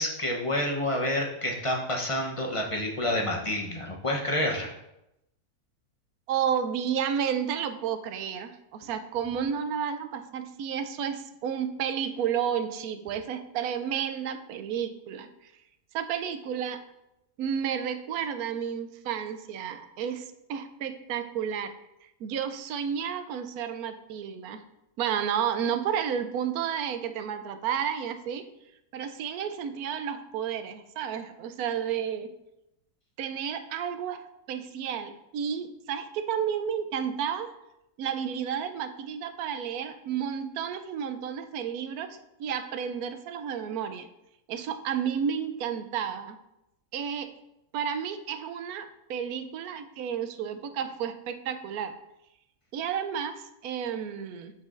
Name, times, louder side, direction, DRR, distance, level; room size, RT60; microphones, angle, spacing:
voice 1, 0.0-4.7, left 1 dB, 30° left, -1 dB, 0.6 m, -28 dB
voice 2, 6.3-15.3 15.9-16.8 17.4-21.7 22.2-24.6 25.0-28.5 28.9-32.3 33.2-37.5 38.0-44.1 44.5-46.4 46.9-47.3 47.7-51.9 52.7-54.5, right 8 dB, 75° right, 9 dB, 1.0 m, -31 dB
8.1 x 6.0 x 2.5 m, 0.88 s
omnidirectional pair, 1.6 m